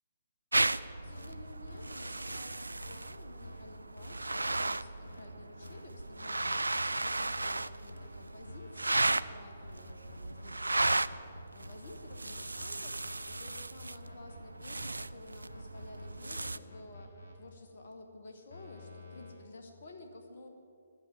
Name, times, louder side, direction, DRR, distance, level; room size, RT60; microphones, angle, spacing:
sound 1, 0.5-16.6, right 2 dB, 80° right, 0.4 m, -35 dB
voice 1, 0.7-20.5, left 2 dB, 55° left, 4 dB, 1.7 m, -53 dB
sound 2, 1.0-1.3 1.7-1.9 2.3-2.4 2.8-3.0 3.4-3.5 4.0-4.1 4.5-4.7 5.0-5.3 5.6-5.8 6.2-6.4 6.7-6.9 7.3-7.5 7.9-8.1 8.4-8.7 9.0-9.2 9.6-10.4 10.8-12.6 13.0-14.9 15.5-17.3 18.5-19.3, left 2 dB, 70° left, 3.1 m, -50 dB
11.0 x 9.1 x 9.2 m, 2.6 s
figure-of-eight pair, 135°, 0 cm